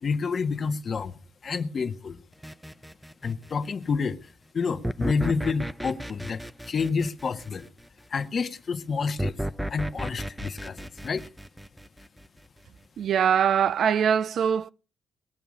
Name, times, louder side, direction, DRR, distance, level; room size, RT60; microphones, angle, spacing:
voice 1, 0.0-1.1 1.4-2.2 3.2-4.2 4.5-7.7 8.1-9.4 9.7-11.2, left 5 dB, 45° left, 1.6 m, -29 dB
sound 1, 2.4-3.6 4.8-7.9 9.2-12.4, right 1 dB, 5° right, 0.7 m, -34 dB
voice 2, 13.0-14.7, right 8 dB, 65° right, 0.6 m, -22 dB
21.0 x 7.0 x 6.4 m
cardioid pair, 90°, 0 cm